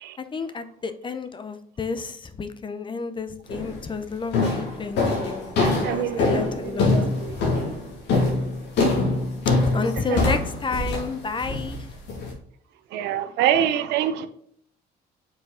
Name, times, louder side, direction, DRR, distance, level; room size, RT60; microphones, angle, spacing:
voice 1, 0.2-6.9 7.3-7.5 9.7-11.9, left 4 dB, 30° left, 0.7 m, -31 dB
sound 1, 3.5-3.8 4.3-12.3, left 3 dB, 80° left, 2.2 m, -24 dB
voice 2, 5.6-7.4 10.1-10.2 12.9-14.3, right 10 dB, 85° right, 0.7 m, -26 dB
5.7 x 4.5 x 3.8 m
cardioid pair, 95°, 17 cm